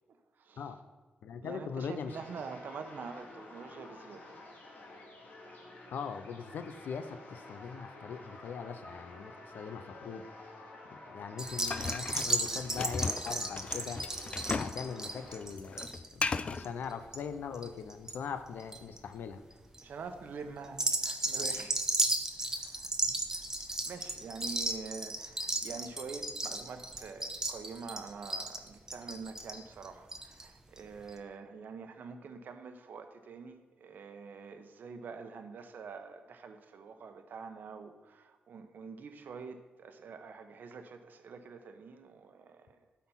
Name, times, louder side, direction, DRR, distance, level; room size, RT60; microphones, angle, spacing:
voice 1, 0.1-0.7 1.4-4.4 19.8-21.8 22.4-22.9 23.3-42.8, right 5 dB, 75° right, 7 dB, 0.9 m, -46 dB
voice 2, 1.2-2.2 5.9-10.3 10.9-14.0 14.5-19.4 23.0-23.1, left 6 dB, 90° left, 9 dB, 0.6 m, -41 dB
sound 1, 2.1-15.4, left 2 dB, 60° left, 2.1 m, -51 dB
sound 2, 11.4-18.2 18.5-19.0 19.5-19.8 20.7-30.5 30.8-30.9 31.1-31.2, right 2 dB, 15° right, 0.8 m, -35 dB
sound 3, 11.7-14.8 15.1-16.7, left 4 dB, 35° left, 0.3 m, -36 dB
12.0 x 4.2 x 5.6 m, 1.3 s
wide cardioid pair, 110°, 3 cm